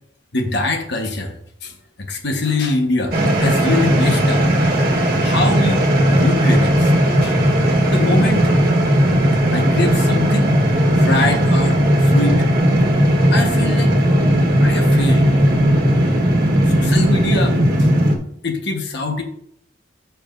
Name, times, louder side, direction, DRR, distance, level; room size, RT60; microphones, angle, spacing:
voice 1, 0.3-1.4 1.6-1.7 2.1-4.4 5.2-6.9 7.2-7.4 7.9-8.5 9.5-12.5 13.3-13.9 14.6-15.3 16.6-17.9 18.4-19.2, left 2 dB, 60° left, 4 dB, 1.2 m, -23 dB
sound 1, 3.1-18.2, equal, 50° right, 1.3 m, -16 dB
14.0 x 4.9 x 2.5 m, 0.70 s
head